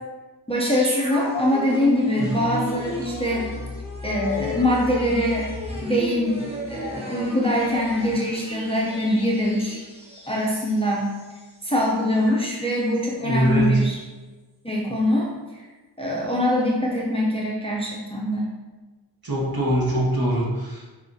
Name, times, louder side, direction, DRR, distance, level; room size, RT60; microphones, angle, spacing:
voice 1, 0.5-3.5 4.0-5.5 5.8-9.8 10.3-11.1 11.6-14.0 14.6-15.3 16.0-18.5, left 1 dB, 15° left, -4 dB, 0.6 m, -23 dB
sound 1, 0.6-11.4 11.7-11.8, left 1 dB, 15° right, 1.0 m, -33 dB
voice 2, 13.2-13.7 19.2-20.9, right 1 dB, 55° right, -5 dB, 1.4 m, -23 dB
6.0 x 2.5 x 2.7 m, 1.2 s
wide cardioid pair, 90°, 44 cm